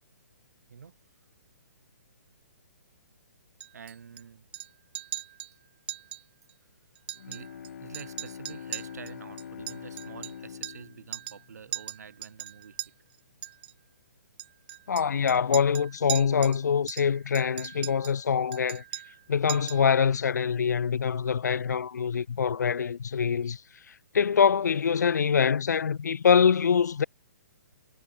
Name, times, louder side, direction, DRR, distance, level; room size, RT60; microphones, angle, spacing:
Chink clink, 3.6-4.2 4.5-4.7 4.9-5.5 5.9-6.2 6.5-6.6 7.0-7.7 7.9-10.9 11.1-11.4 11.7-12.9 13.4-13.7 14.4-16.6 16.9-18.2 18.5-19.2 19.5-19.9, right 14 dB, 40° right, 1.1 m, -39 dB
voice 1, 3.7-4.4 7.3-7.5 7.8-12.8, right 7 dB, 75° right, 1.4 m, -47 dB
Bowed string instrument, 7.1-12.2, left 8 dB, 60° left, 4.2 m, -44 dB
voice 2, 14.9-18.8 19.3-23.6 24.1-27.0, left 7 dB, 85° left, 0.5 m, -24 dB
hypercardioid pair, 160°, 9 cm